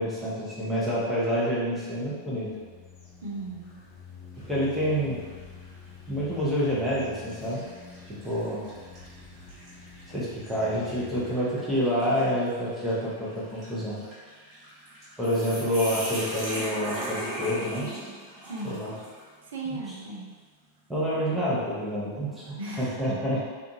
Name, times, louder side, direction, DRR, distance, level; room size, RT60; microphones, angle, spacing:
voice 1, 0.0-2.5 4.4-5.2 6.1-7.6 8.1-8.7 10.1-14.0 15.2-17.9 18.6-18.9 19.6-19.8 20.9-23.4, equal, 5° right, -8 dB, 0.8 m, -28 dB
sound 1, 1.7-11.4, left 5 dB, 35° left, 0.5 m, -48 dB
voice 2, 3.2-3.7 18.4-18.8 19.5-20.3 22.6-23.3, right 2 dB, 65° right, -2 dB, 0.5 m, -36 dB
sound 2, 4.4-4.8 5.4-5.5 6.4-6.7 7.3-19.3, right 1 dB, 30° right, 1.3 m, -39 dB
2.5 x 2.5 x 2.6 m, 1.4 s
figure-of-eight pair, 90°, 0 cm